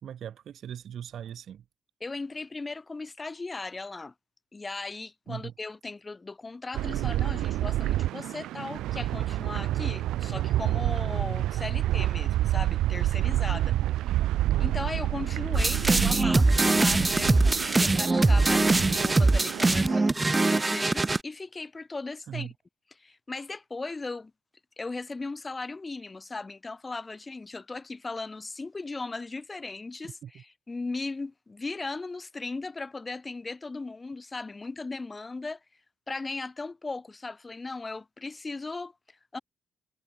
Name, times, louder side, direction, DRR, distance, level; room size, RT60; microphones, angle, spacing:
voice 1, 0.0-1.6 5.3-5.5 13.5-13.8 22.3-22.5 30.2-30.4, right 9 dB, 65° right, 3.8 m, -39 dB
voice 2, 2.0-4.1 4.5-13.7 14.6-22.5 22.9-24.3 24.8-35.6 36.1-39.4, left 3 dB, 25° left, 3.9 m, -37 dB
sound 1, 6.7-20.0, right 14 dB, 85° right, 1.1 m, -28 dB
sound 2, 15.5-21.2, right 2 dB, 20° right, 0.4 m, -22 dB
cardioid pair, 90°, 0 cm